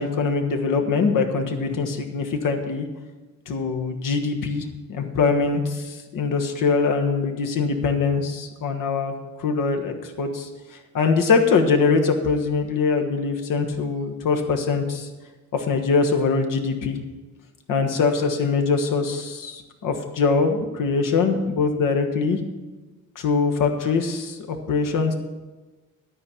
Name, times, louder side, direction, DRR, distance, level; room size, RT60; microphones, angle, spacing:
voice 1, 0.0-2.9 3.5-9.1 9.4-15.1 15.5-17.0 17.7-22.4 23.1-25.1, left 4 dB, 50° left, 4 dB, 1.3 m, -23 dB
12.5 x 5.4 x 7.1 m, 1.2 s
figure-of-eight pair, 45°, 43 cm